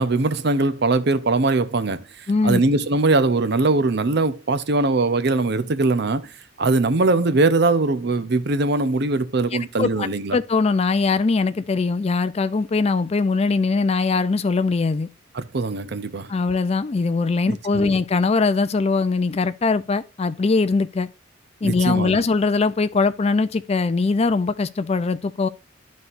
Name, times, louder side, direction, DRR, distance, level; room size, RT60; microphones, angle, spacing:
voice 1, 0.0-2.0 2.4-6.3 6.6-10.4 15.3-16.3 17.5-17.9 21.6-22.2, right 3 dB, 55° right, 0.7 m, -21 dB
voice 2, 2.3-2.6 9.8-15.1 16.3-21.1 21.6-25.5, left 4 dB, 30° left, 0.4 m, -21 dB
12.5 x 4.2 x 2.5 m
head